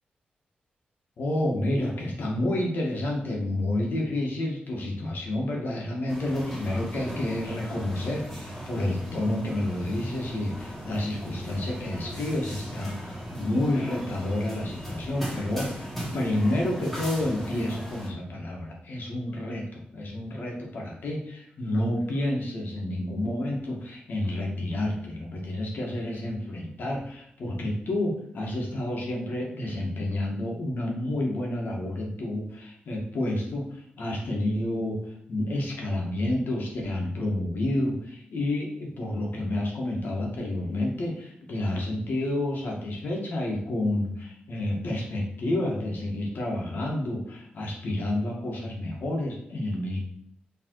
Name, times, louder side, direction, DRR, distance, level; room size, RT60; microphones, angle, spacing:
voice 1, 1.2-50.0, left 1 dB, 70° left, -1 dB, 2.0 m, -29 dB
sound 1, 6.1-18.1, equal, 5° left, 2.2 m, -38 dB
6.5 x 4.0 x 4.8 m, 0.68 s
wide cardioid pair, 100°, 3 cm